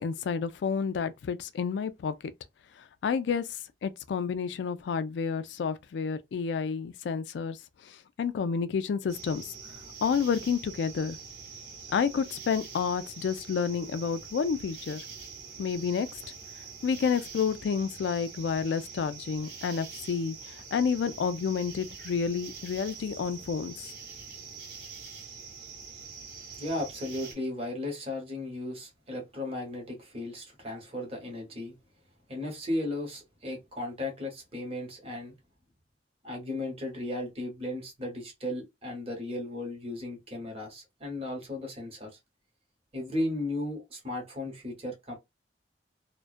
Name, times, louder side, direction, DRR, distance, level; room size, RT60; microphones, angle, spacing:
voice 1, 0.0-2.1 3.0-7.6 7.9-9.5 10.0-11.2 11.9-15.0 15.6-16.1 16.8-23.9, left 6 dB, 75° left, 0.3 m, -30 dB
sound 1, 9.1-27.3, right 5 dB, 65° right, 1.0 m, -45 dB
voice 2, 26.6-31.8 32.3-35.3 36.2-42.2 42.9-45.1, left 1 dB, 35° right, 1.1 m, -35 dB
2.3 x 2.2 x 2.4 m
head